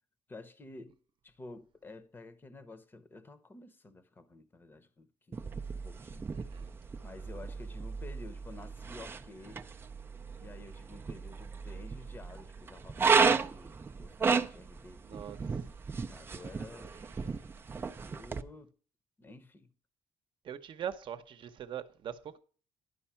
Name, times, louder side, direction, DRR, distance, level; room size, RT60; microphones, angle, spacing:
voice 1, 0.3-1.0 1.2-6.3 7.0-9.7 10.4-15.3 16.1-17.0 18.0-18.7 19.2-19.7, left 2 dB, 20° left, 0.9 m, -51 dB
sound 1, 5.3-18.4, right 5 dB, 20° right, 0.5 m, -34 dB
voice 2, 6.3-6.7 15.0-15.6 16.9-17.5 20.4-22.4, right 9 dB, 45° right, 0.9 m, -43 dB
11.5 x 5.5 x 5.7 m
cardioid pair, 170°, 11 cm